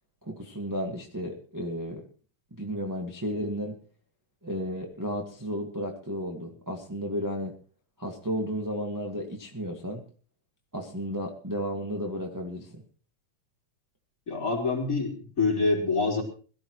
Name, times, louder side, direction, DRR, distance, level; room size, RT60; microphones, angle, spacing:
voice 1, 0.2-2.0 2.5-3.8 4.4-7.5 8.0-10.0 10.7-12.8, equal, 10° right, 0 dB, 1.0 m, -33 dB
voice 2, 14.3-16.2, left 3 dB, 25° left, 0 dB, 4.3 m, -26 dB
22.5 x 14.0 x 3.1 m, 0.40 s
omnidirectional pair, 3.4 m